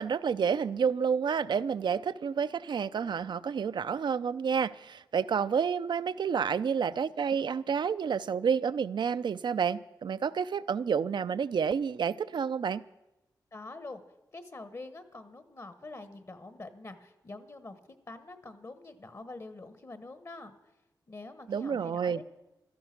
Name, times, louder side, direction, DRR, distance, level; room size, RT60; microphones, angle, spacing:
voice 1, 0.0-12.8 21.5-22.2, right 6 dB, 75° right, 0.5 m, -29 dB
voice 2, 13.5-14.0 14.3-17.8 18.1-20.5 21.1-22.2, left 2 dB, 40° left, 1.2 m, -45 dB
16.5 x 13.0 x 5.9 m
wide cardioid pair, 85°, 8 cm